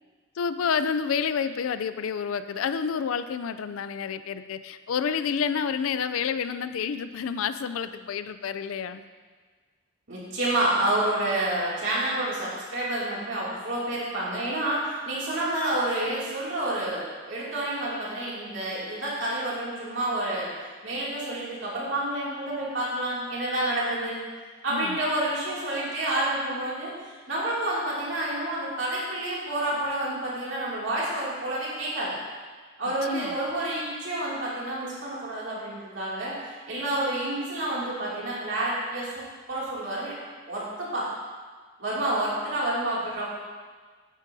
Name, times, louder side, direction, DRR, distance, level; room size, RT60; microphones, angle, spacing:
voice 1, 0.4-9.0 24.7-25.0 33.0-33.4, left 6 dB, 85° left, 12 dB, 0.4 m, -29 dB
voice 2, 10.1-20.5 20.8-24.2 24.6-32.2 32.8-39.2 39.5-40.1 40.5-41.1 41.8-43.3, right 1 dB, 65° right, -7 dB, 2.5 m, -29 dB
10.0 x 8.9 x 2.7 m, 1.5 s
head